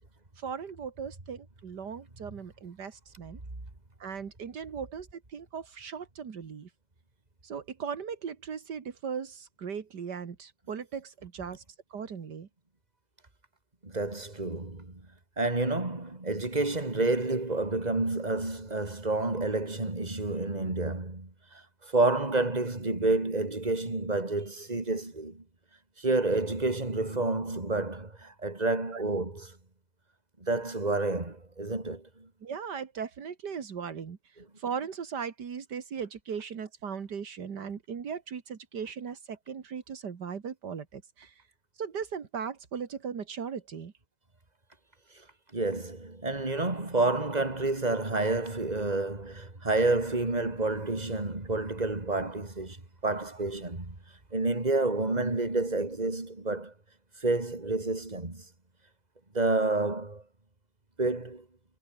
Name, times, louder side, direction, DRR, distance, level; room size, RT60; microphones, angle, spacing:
voice 1, 0.4-3.4 4.0-6.7 7.4-11.6 11.9-12.5 28.9-29.0 32.4-34.2 34.6-41.3 41.8-43.9, right 6 dB, 85° right, 2.4 m, -38 dB
voice 2, 13.8-15.0 15.4-25.4 26.0-29.5 30.4-32.3 45.5-52.8 53.0-54.0 54.3-56.7 57.2-58.4 59.3-60.2 61.0-61.4, right 2 dB, 25° right, 3.4 m, -29 dB
omnidirectional pair, 1.8 m